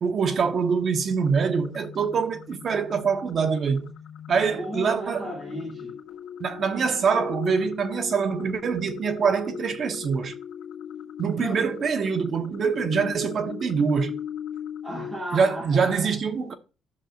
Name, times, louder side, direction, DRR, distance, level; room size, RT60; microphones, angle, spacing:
voice 1, 0.0-3.9 4.3-5.3 6.4-10.3 11.2-14.2 15.3-16.5, right 6 dB, 45° right, 1.0 m, -24 dB
sound 1, 1.2-15.3, left 9 dB, 90° left, 1.8 m, -39 dB
voice 2, 4.5-5.9 7.5-7.6 11.4-11.6 14.8-16.1, equal, 15° right, 5.1 m, -35 dB
10.5 x 6.5 x 2.4 m
cardioid pair, 135°, 0 cm